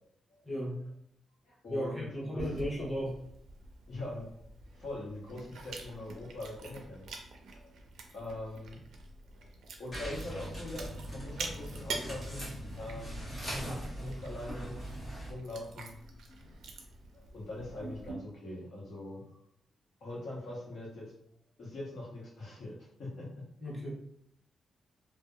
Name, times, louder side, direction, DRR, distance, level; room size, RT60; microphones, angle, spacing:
voice 1, 0.4-0.8 1.7-3.1 23.6-23.9, equal, ahead, -7 dB, 0.9 m, -35 dB
voice 2, 1.4-2.5 3.9-4.4 4.7-7.1 7.6-7.8 8.1-8.8 9.4-9.5 9.8-12.5 12.8-13.2 13.6-14.9 15.2-16.7 17.1-19.3 20.0-21.1 21.6-23.4 23.7-23.8, left 1 dB, 70° left, -4 dB, 0.8 m, -43 dB
Chewing mastication, 2.4-18.1, right 3 dB, 90° right, 0.4 m, -46 dB
sound 1, 9.9-15.3, equal, 20° left, 1.0 m, -41 dB
2.6 x 2.1 x 2.3 m, 0.69 s
cardioid pair, 125°, 0 cm